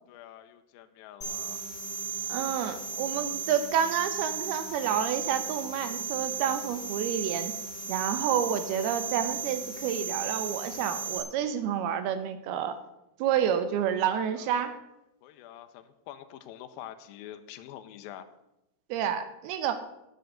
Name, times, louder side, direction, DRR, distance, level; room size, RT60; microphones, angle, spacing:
voice 1, 0.1-1.6 14.3-14.8 15.2-18.3, left 11 dB, 90° left, 9 dB, 2.1 m, -46 dB
sound 1, 1.2-11.2, right 5 dB, 30° left, 1.1 m, -35 dB
voice 2, 2.3-7.5 7.9-12.8 13.2-14.8 18.9-19.8, right 9 dB, 75° right, 11 dB, 2.4 m, -29 dB
10.5 x 7.8 x 7.7 m, 0.89 s
omnidirectional pair, 5.1 m